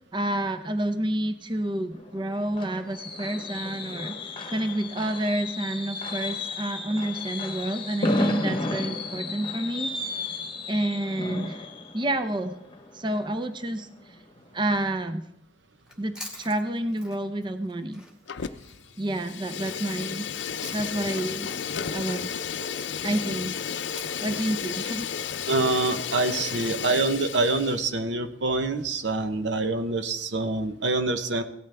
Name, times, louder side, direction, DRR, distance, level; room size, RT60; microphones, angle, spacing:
voice 1, 0.1-9.9 10.7-11.7 11.9-12.6 12.9-13.9 14.5-15.2 16.0-18.0 19.0-20.3 20.7-21.5 21.9-22.3 23.0-23.6 24.2-25.1, right 1 dB, 25° right, 10 dB, 0.6 m, -29 dB
Fireworks, 1.9-13.6 14.0-14.3 14.5-14.6, left 2 dB, 30° left, 1.1 m, -33 dB
Chewing mastication, 15.8-21.1 21.4-25.8, left 1 dB, 5° right, 2.2 m, -48 dB
Fire, 18.3-18.8 19.1-27.8, left 7 dB, 75° left, 0.5 m, -33 dB
voice 2, 25.5-31.4, right 3 dB, 80° right, 9 dB, 0.9 m, -26 dB
17.0 x 12.0 x 3.4 m, 0.80 s
head